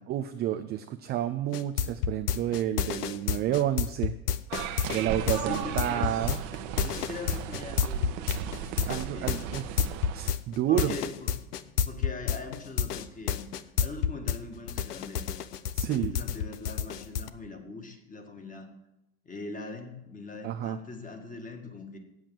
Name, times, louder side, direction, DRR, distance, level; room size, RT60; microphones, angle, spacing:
voice 1, 0.1-4.1 4.6-6.4 8.9-11.0 15.7-16.1 20.4-20.8, right 11 dB, 25° right, 7 dB, 0.4 m, -30 dB
sound 1, 1.5-14.4 14.7-17.3, left 9 dB, 80° left, 0.7 m, -29 dB
sound 2, 4.5-10.3, right 10 dB, 55° right, 1.1 m, -36 dB
voice 2, 5.0-6.1 6.8-8.7 9.0-9.4 10.7-13.4 13.8-15.3 15.8-18.7 19.2-22.0, left 3 dB, 15° left, 4 dB, 1.8 m, -41 dB
8.7 x 7.8 x 7.5 m, 0.92 s
hypercardioid pair, 100°, 46 cm